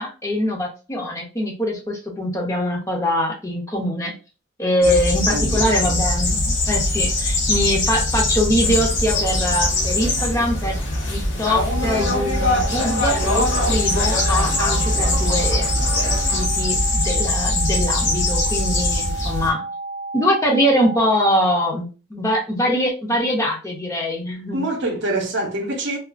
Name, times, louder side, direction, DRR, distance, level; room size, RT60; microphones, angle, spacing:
voice 1, 0.0-4.1 4.6-10.8 11.1-15.7 16.3-19.6 20.1-24.6, equal, 15° left, 0.5 m, -23 dB
sound 1, 4.8-19.5, left 2 dB, 70° left, 0.8 m, -22 dB
voice 2, 5.3-6.0 24.5-26.0, right 2 dB, 60° right, 0.7 m, -26 dB
sound 2, 8.6-16.4, left 2 dB, 85° left, 1.1 m, -27 dB
sound 3, 11.7-21.7, right 3 dB, 30° right, 0.7 m, -32 dB
2.4 x 2.3 x 2.4 m
head